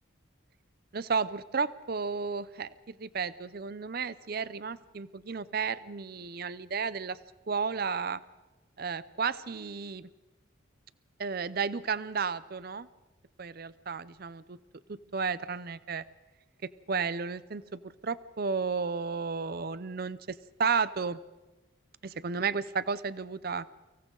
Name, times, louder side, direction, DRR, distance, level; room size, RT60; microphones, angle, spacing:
voice 1, 0.9-7.2 7.5-8.2 8.8-10.1 11.2-12.9 13.4-14.6 14.9-16.0 16.9-21.2 22.0-23.7, right 5 dB, 50° right, 16 dB, 0.6 m, -33 dB
29.5 x 24.5 x 3.9 m, 1.2 s
head